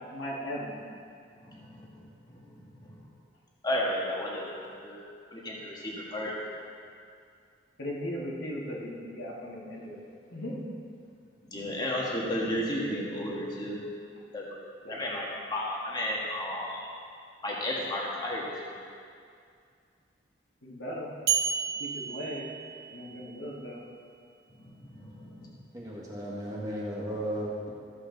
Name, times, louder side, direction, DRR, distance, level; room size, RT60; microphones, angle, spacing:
voice 1, 0.1-0.7 7.8-10.0 10.3-10.6 14.8-15.3 20.6-21.1 21.8-22.5 22.9-23.8, equal, 85° left, -4 dB, 2.0 m, -37 dB
voice 2, 1.5-1.9 2.3-2.4 3.6-5.0 5.3-6.3 11.5-13.7 14.3-14.5 14.9-16.8 17.4-18.8 24.9-25.5, left 1 dB, 20° left, -4 dB, 1.6 m, -33 dB
sound 1, 21.3-23.3, right 8 dB, 55° right, 1.0 m, -31 dB
voice 3, 25.7-27.7, right 1 dB, 20° right, -5 dB, 1.6 m, -35 dB
13.5 x 7.8 x 4.0 m, 2.3 s
head